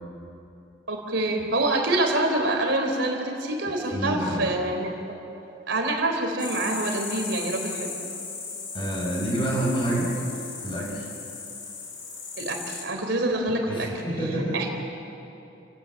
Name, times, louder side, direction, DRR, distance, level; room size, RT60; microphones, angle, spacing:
voice 1, 0.9-4.9 5.7-8.0 12.4-13.9 14.5-14.7, right 2 dB, 65° right, 2 dB, 3.7 m, -26 dB
voice 2, 3.8-4.5 8.7-10.1 10.6-11.1 13.5-14.6, right 1 dB, 25° left, -3 dB, 7.4 m, -28 dB
sound 1, 6.4-12.8, left 5 dB, 85° left, 6.7 m, -36 dB
29.0 x 17.5 x 9.1 m, 2.9 s
head